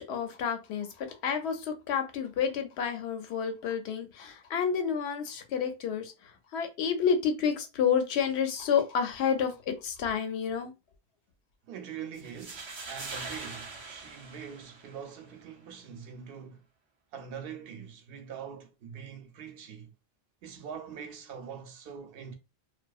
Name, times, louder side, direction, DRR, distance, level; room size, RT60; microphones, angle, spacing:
voice 1, 0.0-10.7, left 7 dB, 90° left, 0.9 m, -30 dB
voice 2, 11.7-16.6 17.1-19.9 20.4-22.3, right 7 dB, 65° right, 0.8 m, -43 dB
sound 1, 12.1-15.2, right 3 dB, 50° right, 0.3 m, -42 dB
2.6 x 2.3 x 2.3 m
omnidirectional pair, 1.1 m